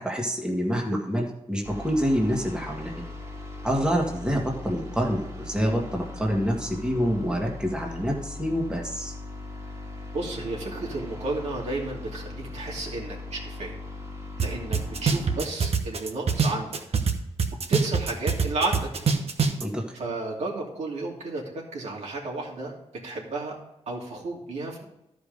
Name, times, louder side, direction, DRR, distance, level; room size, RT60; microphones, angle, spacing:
voice 1, 0.0-3.0 3.6-9.1 19.6-20.0, equal, 5° right, 0 dB, 1.7 m, -27 dB
sound 1, 1.6-15.4, left 2 dB, 30° right, 2.1 m, -39 dB
voice 2, 10.1-13.8 14.4-16.8 17.7-18.9 19.9-21.4 21.7-22.7 23.0-23.6 23.9-24.8, right 2 dB, 85° right, -3 dB, 2.8 m, -32 dB
sound 2, 14.4-14.5 14.7-17.1 17.4-19.6, right 5 dB, 65° right, 1.2 m, -23 dB
13.0 x 5.2 x 5.3 m, 0.87 s
wide cardioid pair, 125°, 11 cm